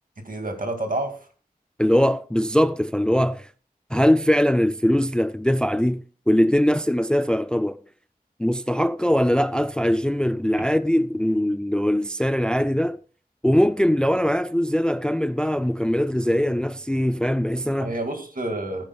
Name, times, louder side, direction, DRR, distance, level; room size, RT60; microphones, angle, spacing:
voice 1, 0.2-1.3 17.8-18.8, right 2 dB, 65° right, 2.1 m, -29 dB
voice 2, 1.8-3.5 3.9-7.8 8.4-13.0 13.4-17.9, equal, 5° left, 0.4 m, -21 dB
14.5 x 10.0 x 2.3 m
wide cardioid pair, 60°, 16 cm